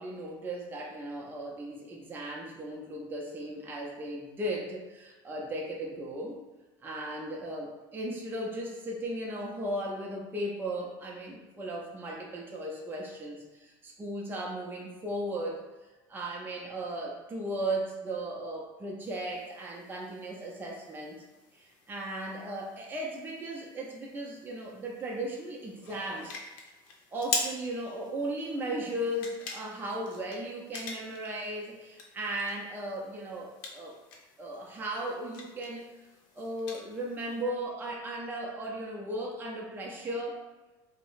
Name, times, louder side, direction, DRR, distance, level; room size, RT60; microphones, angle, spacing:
voice 1, 0.0-6.4 6.8-15.7 16.1-21.2 21.5-26.4 27.1-33.9 34.4-36.0 36.3-40.4, right 1 dB, 20° right, -2 dB, 0.5 m, -36 dB
sound 1, 19.0-37.4, left 3 dB, 85° left, 0.6 m, -44 dB
2.8 x 2.0 x 3.9 m, 1.1 s
cardioid pair, 125°, 11 cm